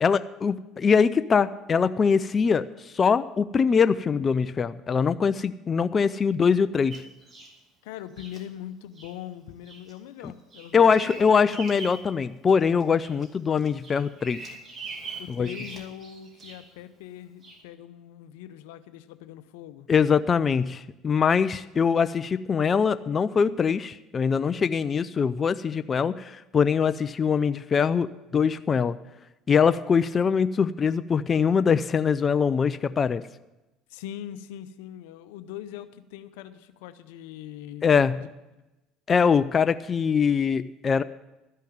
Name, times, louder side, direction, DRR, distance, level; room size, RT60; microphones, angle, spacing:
voice 1, 0.0-7.0 10.2-10.3 10.7-14.6 15.4-15.5 19.9-29.0 29.5-33.2 37.8-38.2 39.1-41.0, left 6 dB, 35° left, 13 dB, 0.4 m, -23 dB
Bird vocalization bird call bird song, 6.9-7.6 8.2-8.4 9.0-9.2 9.7-9.9 10.3-12.1 12.5-13.3 13.6-16.7 17.4-17.6, right 3 dB, 30° right, 2.5 m, -42 dB
voice 2, 7.8-11.3 15.2-19.9 33.9-38.3, left 11 dB, 85° left, 12 dB, 0.7 m, -41 dB
13.0 x 5.6 x 9.2 m, 1.0 s
supercardioid pair, 85°, 0 cm